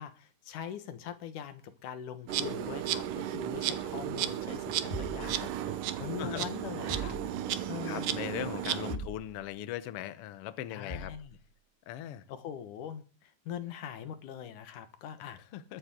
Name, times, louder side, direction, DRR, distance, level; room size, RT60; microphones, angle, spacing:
voice 1, 0.0-7.2 7.7-8.2 8.9-9.1 10.7-11.4 12.3-15.4, left 9 dB, 70° left, 2.7 m, -42 dB
Insect, 2.3-9.0, right 11 dB, 80° right, 2.4 m, -34 dB
sound 1, 4.9-6.0 6.9-7.8 8.9-9.6 10.9-11.4, right 1 dB, 10° left, 3.5 m, -42 dB
voice 2, 7.8-11.1 11.9-12.3 15.5-15.8, left 12 dB, 90° left, 1.3 m, -39 dB
21.5 x 9.8 x 3.7 m
omnidirectional pair, 4.0 m